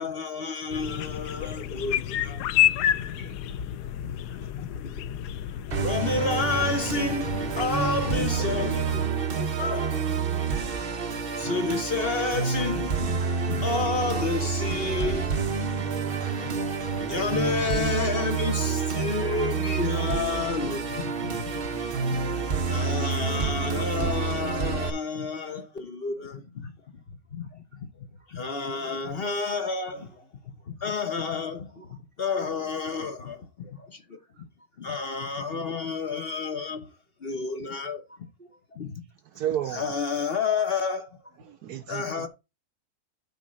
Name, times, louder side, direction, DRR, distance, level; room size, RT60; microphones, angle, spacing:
voice 1, 0.0-2.4 3.2-3.3 4.0-4.2 4.5-5.1 5.7-8.8 9.6-10.1 10.3-10.4 11.4-13.2 13.5-15.4 15.7-15.9 16.4-16.5 17.1-21.5 22.1-22.2 22.7-26.7 27.3-27.9 28.3-30.2 30.7-31.8 32.2-33.4 33.9-34.2 34.8-36.9 37.2-38.0 38.8-39.0 39.7-41.2 41.9-42.3, left 4 dB, 40° left, 1.1 m, -30 dB
voice 2, 0.5-0.9 1.4-1.6 1.9-2.0 2.5-2.9 4.2-4.7 5.0-5.9 6.4-7.3 8.3-9.7 12.6-12.7 14.4-14.5 14.9-15.1 15.4-15.5 25.2-25.7 26.1-26.9 27.5-29.2 29.9-30.3 30.6-30.7 31.8-32.4 32.8-33.3 33.6-34.4 36.2-36.3 36.7-36.8 38.1-38.8 40.2-40.4, right 3 dB, 5° left, 2.5 m, -49 dB
sound 1, 0.7-9.1, left 11 dB, 90° left, 1.2 m, -30 dB
Musical instrument, 5.7-24.9, right 5 dB, 40° right, 1.1 m, -28 dB
voice 3, 39.2-39.9 41.4-42.3, right 11 dB, 75° right, 1.2 m, -32 dB
9.4 x 3.6 x 6.2 m
omnidirectional pair, 1.7 m